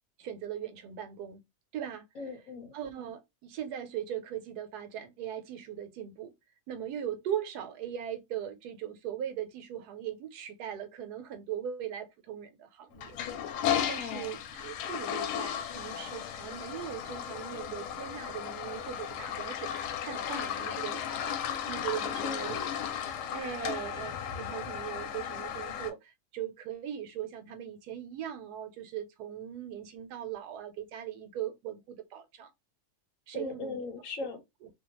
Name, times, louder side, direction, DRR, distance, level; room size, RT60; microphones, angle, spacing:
voice 1, 0.2-1.4 1.7-2.0 2.7-6.3 6.7-13.2 13.9-21.4 21.6-22.6 23.3-32.5 33.3-33.8 34.6-34.7, right 10 dB, 90° right, 1.2 m, -39 dB
voice 2, 2.2-2.7 14.0-14.3 22.2-22.7 33.3-34.4, left 4 dB, 65° left, 1.0 m, -39 dB
Toilet flush, 12.9-25.9, left 9 dB, 90° left, 1.1 m, -35 dB
2.7 x 2.2 x 2.9 m
omnidirectional pair, 1.6 m